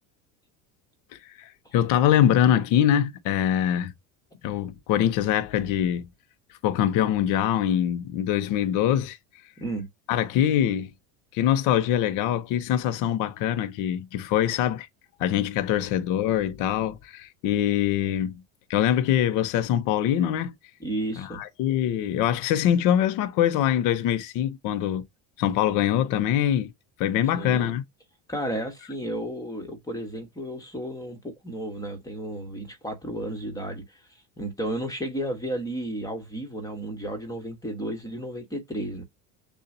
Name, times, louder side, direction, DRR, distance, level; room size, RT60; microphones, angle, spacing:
voice 1, 1.1-3.9 4.4-6.1 6.6-9.2 10.1-10.9 11.3-14.9 15.2-18.3 18.7-20.5 21.2-25.0 25.4-26.7 27.0-27.8, left 10 dB, 55° left, 0.8 m, -23 dB
voice 2, 20.8-21.4 27.3-27.8 28.3-39.0, right 1 dB, 10° left, 1.4 m, -33 dB
6.6 x 2.4 x 2.7 m
cardioid pair, 150°, 37 cm